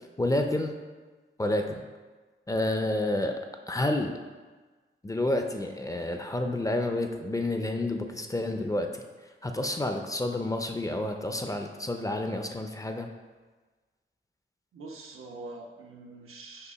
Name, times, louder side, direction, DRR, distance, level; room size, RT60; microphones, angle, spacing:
voice 1, 0.2-0.7 1.4-1.8 2.5-3.4 3.7-4.2 5.0-9.0 9.4-13.1, left 1 dB, 15° left, 4 dB, 0.4 m, -29 dB
voice 2, 14.7-16.7, right 3 dB, 90° right, 0 dB, 0.9 m, -44 dB
6.7 x 2.5 x 5.6 m, 1.3 s
wide cardioid pair, 125°, 21 cm